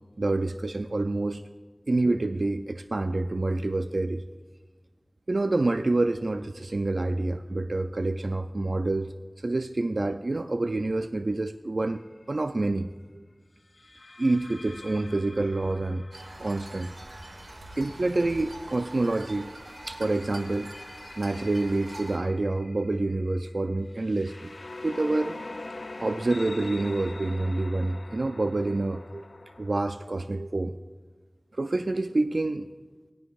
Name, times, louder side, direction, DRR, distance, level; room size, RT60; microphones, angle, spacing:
voice 1, 0.2-1.4 1.9-4.2 5.3-12.0 12.3-13.2 14.2-16.0 16.4-16.9 17.8-19.5 19.9-20.7 21.2-24.5 24.8-25.4 26.0-29.3 29.6-30.7 31.5-32.7, right 2 dB, 70° right, 8 dB, 0.4 m, -27 dB
sound 1, 12.0-12.2 13.7-18.5 19.3-29.8, left 2 dB, 80° left, 0.4 m, -44 dB
sound 2, 16.1-22.2, right 1 dB, 85° right, 1.5 m, -44 dB
18.5 x 11.5 x 2.5 m, 1.4 s
wide cardioid pair, 45°, 0 cm